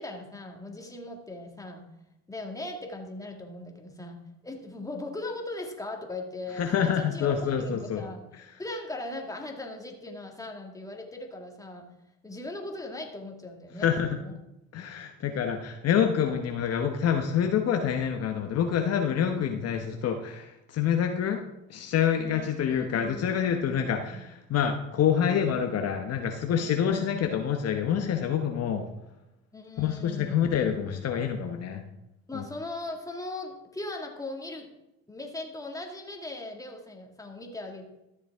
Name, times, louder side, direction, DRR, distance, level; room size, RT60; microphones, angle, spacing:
voice 1, 0.0-1.9 2.3-8.2 8.6-11.9 12.2-14.4 22.2-23.8 24.1-24.2 26.6-27.4 29.5-30.6 32.3-34.7 35.1-37.9, left 2 dB, 10° left, 2 dB, 1.9 m, -39 dB
voice 2, 6.6-8.0 8.3-8.4 13.8-14.2 14.7-21.4 21.7-28.9 29.8-31.8 32.3-32.4, left 8 dB, 50° left, 5 dB, 1.0 m, -27 dB
13.0 x 7.2 x 3.5 m, 0.91 s
supercardioid pair, 85°, 32 cm